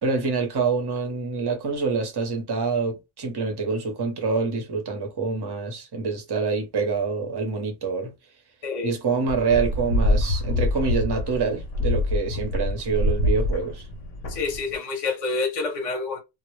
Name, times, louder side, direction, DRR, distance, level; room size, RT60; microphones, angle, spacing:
voice 1, 0.0-8.1 8.8-13.9, right 4 dB, 30° right, 0.5 m, -26 dB
sound 1, 9.3-14.8, left 1 dB, 80° left, 0.9 m, -25 dB
voice 2, 14.3-16.2, left 4 dB, 35° left, 0.7 m, -28 dB
2.0 x 2.0 x 3.0 m
omnidirectional pair, 1.2 m